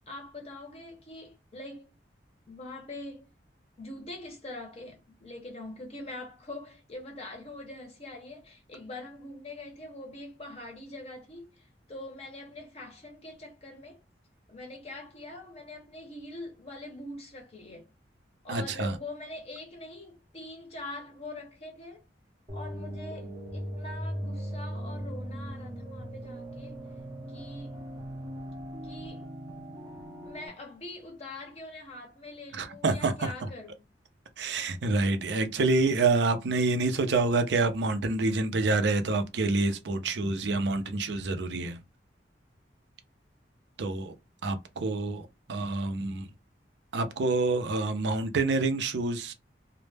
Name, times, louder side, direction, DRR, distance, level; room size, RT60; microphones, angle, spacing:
voice 1, 0.1-1.9 2.5-3.3 3.8-14.0 14.5-17.9 18.4-22.0 22.5-26.8 27.3-27.8 28.8-29.2 30.3-33.8, left 2 dB, 35° left, 0.6 m, -43 dB
voice 2, 18.5-19.0 32.5-33.5 34.4-41.8 43.8-44.1 44.4-46.3 46.9-49.3, right 3 dB, 70° right, 0.5 m, -27 dB
sound 1, 22.5-30.5, equal, 25° right, 0.6 m, -39 dB
2.1 x 2.0 x 3.2 m
head